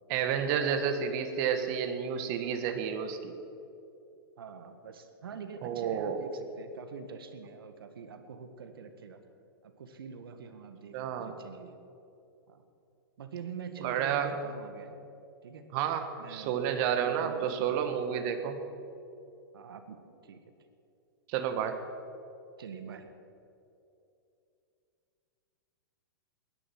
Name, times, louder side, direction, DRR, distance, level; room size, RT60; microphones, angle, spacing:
voice 1, 0.1-3.3 5.6-6.2 10.9-11.3 13.8-14.4 15.7-18.6 21.3-21.8, right 8 dB, 50° right, 7 dB, 1.6 m, -30 dB
voice 2, 4.4-9.2 9.6-11.8 12.5-12.7 13.2-15.0 15.4-15.7 16.2-16.5 17.0-18.6 19.5-20.5 22.6-23.1, right 6 dB, 75° right, 8 dB, 1.8 m, -45 dB
20.5 x 11.0 x 6.2 m, 2.7 s
hypercardioid pair, 115°, 12 cm